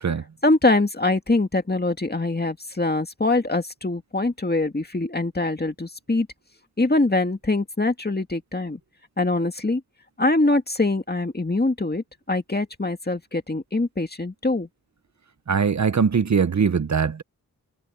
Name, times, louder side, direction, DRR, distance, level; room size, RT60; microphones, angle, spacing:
voice 1, 0.4-6.3 6.8-8.8 9.2-9.8 10.2-14.7, left 2 dB, 25° left, 2.2 m, -23 dB
voice 2, 15.5-17.2, right 6 dB, 50° right, 0.8 m, -21 dB
wide cardioid pair, 90°, 35 cm